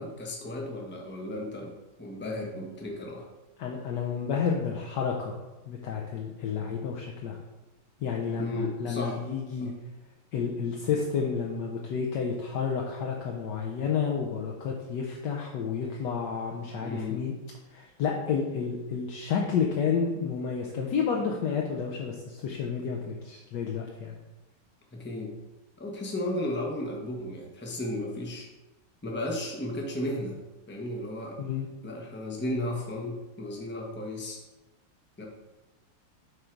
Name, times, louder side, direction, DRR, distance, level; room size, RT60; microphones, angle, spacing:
voice 1, 0.0-3.3 8.4-9.2 9.6-9.7 16.8-17.2 24.9-25.3 25.8-28.5 29.0-30.4 30.7-31.4 31.8-34.4 35.2-35.3, left 1 dB, 10° left, -1 dB, 0.5 m, -34 dB
voice 2, 3.6-5.4 5.7-7.4 8.0-9.7 10.3-17.3 17.7-24.2 31.4-31.7, left 6 dB, 65° left, 0 dB, 1.2 m, -30 dB
8.0 x 3.8 x 4.5 m, 1.1 s
omnidirectional pair, 2.4 m